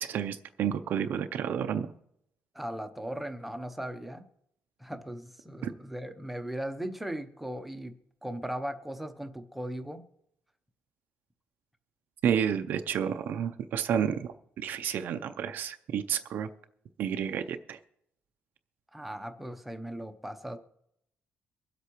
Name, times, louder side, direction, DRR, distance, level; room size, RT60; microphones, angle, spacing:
voice 1, 0.0-1.9 5.6-5.7 12.2-16.5 17.0-17.8, right 8 dB, 55° right, 8 dB, 0.5 m, -30 dB
voice 2, 2.5-4.3 4.8-7.9 8.2-10.0 18.9-20.6, right 1 dB, 5° right, 7 dB, 0.7 m, -38 dB
24.0 x 8.1 x 3.0 m, 0.76 s
cardioid pair, 175°, 4 cm